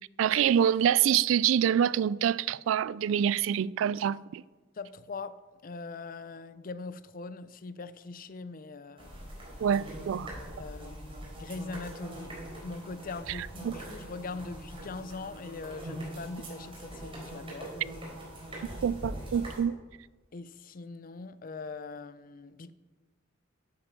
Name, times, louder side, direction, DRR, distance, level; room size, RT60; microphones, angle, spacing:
voice 1, 0.2-4.4 9.6-10.3 13.6-13.7 18.8-19.7, right 9 dB, 80° right, 0.3 m, -26 dB
voice 2, 4.8-5.4 5.6-9.4 10.6-12.3 12.6-17.7 20.3-22.7, left 3 dB, 45° left, 0.5 m, -41 dB
sound 1, 9.0-19.6, right 1 dB, 30° right, 4.0 m, -42 dB
10.5 x 8.8 x 5.7 m
head